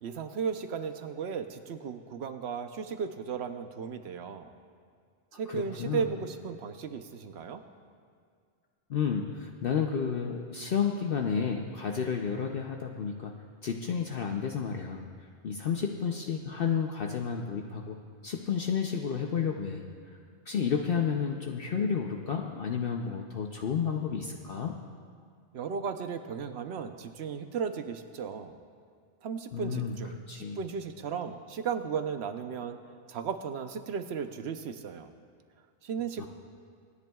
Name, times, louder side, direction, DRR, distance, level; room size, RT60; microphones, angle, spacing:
voice 1, 0.0-4.5 5.3-7.6 25.5-28.5 29.2-32.8 33.1-35.1 35.8-36.3, right 6 dB, 70° right, 8 dB, 1.0 m, -35 dB
voice 2, 5.5-6.0 8.9-13.3 13.6-15.0 15.4-18.0 18.2-19.9 20.5-24.8 29.5-30.0 30.3-30.6 36.2-36.3, left 6 dB, 60° left, 2 dB, 0.8 m, -31 dB
25.0 x 10.5 x 2.3 m, 2.1 s
omnidirectional pair, 1.2 m